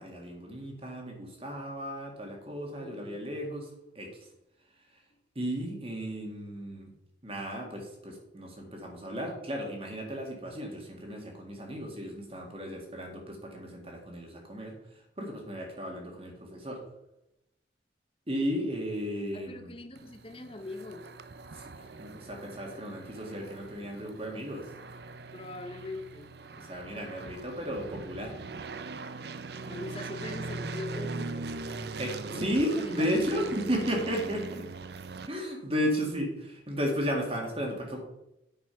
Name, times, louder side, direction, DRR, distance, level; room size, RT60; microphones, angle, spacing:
voice 1, 0.0-3.7 4.0-4.1 5.4-6.9 7.2-14.8 15.2-16.8 18.3-19.7 21.5-24.7 26.5-28.3 32.0-34.7 35.3-38.0, equal, 30° right, 1 dB, 1.9 m, -34 dB
voice 2, 2.8-3.3 19.3-21.1 25.3-26.3 29.7-31.5 32.3-33.5, left 2 dB, 30° left, 7 dB, 0.9 m, -42 dB
sound 1, 20.0-35.3, right 3 dB, 60° right, 0.6 m, -41 dB
9.4 x 6.0 x 5.7 m, 0.87 s
head